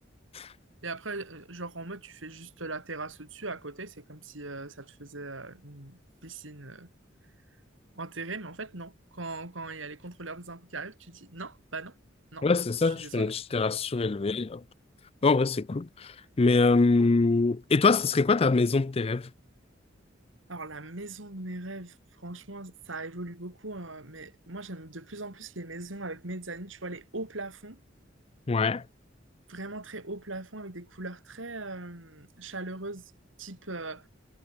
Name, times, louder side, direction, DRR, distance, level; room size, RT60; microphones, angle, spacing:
voice 1, 0.8-6.9 7.9-12.0 12.3-12.5 12.8-13.3 20.5-27.8 29.5-33.1 33.4-34.1, right 2 dB, 85° right, 4.6 m, -40 dB
voice 2, 12.4-14.6 15.2-19.3 28.5-28.8, left 3 dB, 30° left, 0.5 m, -24 dB
head